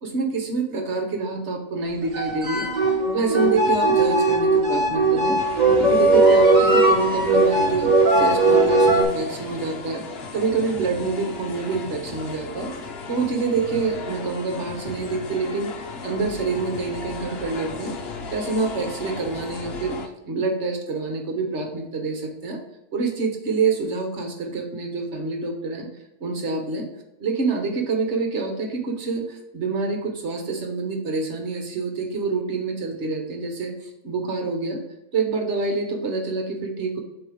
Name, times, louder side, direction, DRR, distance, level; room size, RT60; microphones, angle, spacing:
voice 1, 0.0-5.4 5.8-10.0 10.3-12.7 13.1-15.7 16.0-17.9 18.3-20.0 20.2-22.6 22.9-25.9 26.2-26.9 27.2-34.8 35.1-37.0, right 4 dB, 50° right, 3 dB, 1.4 m, -26 dB
sound 1, 2.0-9.0, right 2 dB, 30° right, 1.2 m, -18 dB
sound 2, 5.4-20.1, left 4 dB, 50° left, 0.9 m, -36 dB
7.3 x 3.1 x 5.1 m, 0.93 s
omnidirectional pair, 1.6 m